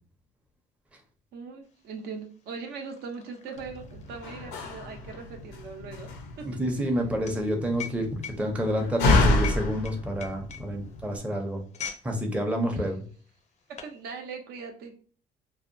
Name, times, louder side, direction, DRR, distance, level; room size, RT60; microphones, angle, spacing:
voice 1, 1.3-6.1 6.4-6.5 12.7-12.8 13.7-15.0, right 5 dB, 70° right, 4 dB, 0.6 m, -40 dB
sound 1, 1.8-1.9 2.1-12.1 12.4-12.7 13.3-14.0, left 7 dB, 45° left, 0.4 m, -42 dB
Slam, 3.6-11.2, left 2 dB, 90° left, 0.5 m, -29 dB
voice 2, 6.4-8.1 8.4-11.6 12.0-13.0, equal, 5° right, 2 dB, 0.5 m, -28 dB
2.7 x 2.1 x 2.5 m, 0.42 s
cardioid pair, 110°, 17 cm